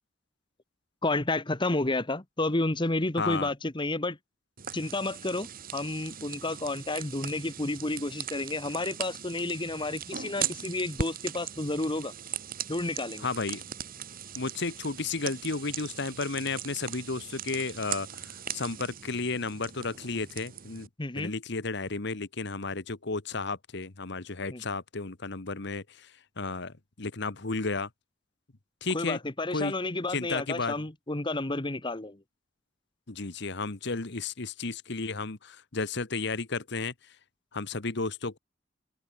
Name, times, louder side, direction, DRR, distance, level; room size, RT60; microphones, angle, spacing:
voice 1, 1.0-4.2 4.7-5.5 5.7-12.1 12.7-13.3 21.0-21.3 24.5-24.6 28.9-32.2, left 2 dB, 25° left, 1.4 m, -31 dB
voice 2, 3.2-3.5 13.2-13.7 14.3-20.9 21.1-27.9 28.8-29.2 29.5-29.7 30.1-30.8 33.1-36.9 37.5-38.4, left 3 dB, 65° left, 1.4 m, -33 dB
sound 1, 4.6-20.9, right 8 dB, 50° right, 2.0 m, -39 dB
head